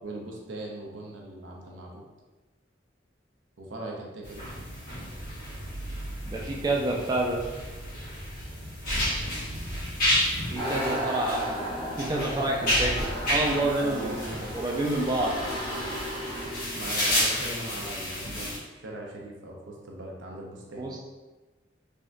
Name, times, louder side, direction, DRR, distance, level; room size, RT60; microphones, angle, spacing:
voice 1, 0.0-2.0 3.6-4.6 13.8-14.5 16.7-18.5 18.7-20.9, right 1 dB, 90° right, -1 dB, 0.6 m, -40 dB
sound 1, 4.2-18.6, equal, 50° left, 1.2 m, -31 dB
voice 2, 6.2-7.4 10.5-14.2 14.5-15.4 20.8-21.1, right 2 dB, 20° right, -2 dB, 0.3 m, -29 dB
sound 2, 10.6-17.0, equal, 25° left, 0.6 m, -34 dB
3.5 x 2.2 x 2.5 m, 1.2 s
head